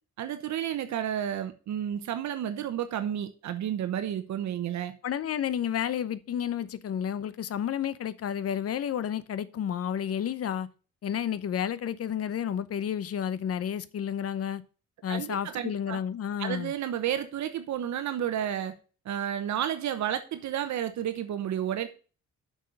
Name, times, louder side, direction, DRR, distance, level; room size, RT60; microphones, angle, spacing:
voice 1, 0.2-4.9 15.1-16.0 16.4-18.7 19.0-21.9, right 10 dB, 70° right, 0.9 m, -31 dB
voice 2, 5.0-10.7 11.0-14.6 15.0-16.7, left 9 dB, 50° left, 0.8 m, -31 dB
6.5 x 6.4 x 6.4 m
cardioid pair, 90°, 30 cm